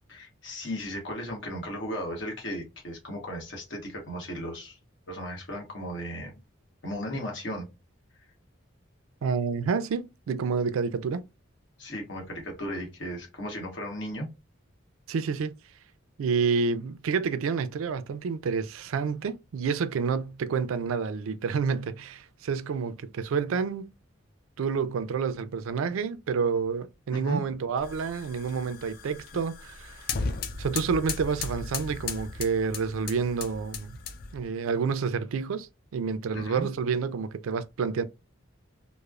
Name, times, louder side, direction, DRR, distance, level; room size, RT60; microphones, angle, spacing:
voice 1, 0.1-4.8 5.1-6.4 6.8-7.6 11.8-14.3 27.1-27.4 36.3-36.7, equal, 65° left, 1.1 m, -35 dB
voice 2, 9.2-11.2 15.1-15.6 16.2-23.9 24.6-30.1 30.6-34.0 34.3-38.0, right 5 dB, 85° right, 0.4 m, -29 dB
sound 1, 27.8-34.5, left 4 dB, 45° left, 0.4 m, -36 dB
3.1 x 2.0 x 2.3 m
head